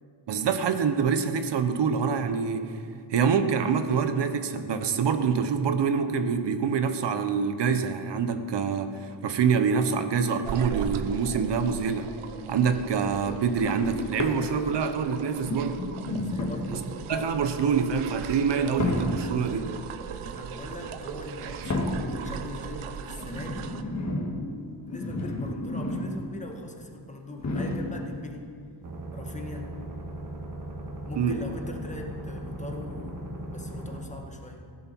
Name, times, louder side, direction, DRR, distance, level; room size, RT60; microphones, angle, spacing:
voice 1, 0.3-2.8 3.1-12.1 12.5-16.0 16.7-16.8 17.1-19.7 31.2-31.4, right 6 dB, 60° right, 9 dB, 1.0 m, -26 dB
sound 1, 10.4-23.8, right 7 dB, 85° right, 0.8 m, -39 dB
sound 2, 13.5-14.9 15.4-16.9 17.6-17.9 18.7-19.5 20.7-20.9 21.6-22.3 23.1-26.3 26.6-26.7 27.4-28.2 29.0-29.1, left 2 dB, 35° left, 1.6 m, -32 dB
voice 2, 16.2-16.9 20.2-23.8 24.8-28.5 29.1-29.7 31.0-33.2 33.5-34.7, left 1 dB, 15° left, 2 dB, 1.5 m, -41 dB
sound 3, 28.8-34.0, right 1 dB, 40° right, 2.0 m, -38 dB
15.5 x 11.0 x 4.6 m, 2.3 s
wide cardioid pair, 130°, 48 cm